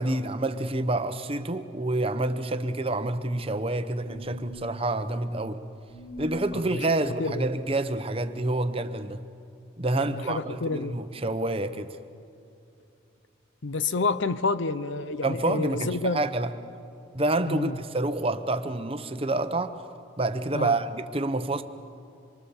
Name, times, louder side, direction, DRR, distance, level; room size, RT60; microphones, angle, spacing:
voice 1, 0.0-5.6 6.2-9.2 9.8-12.0 15.2-16.5 17.1-19.8 20.2-21.6, right 2 dB, 30° right, 0.8 m, -28 dB
sound 1, 4.0-4.8 5.9-6.7, equal, 40° left, 2.6 m, -40 dB
voice 2, 9.9-11.0 13.6-16.2 17.5-17.8 20.5-20.7, left 3 dB, 65° left, 0.7 m, -29 dB
26.0 x 23.5 x 7.1 m
head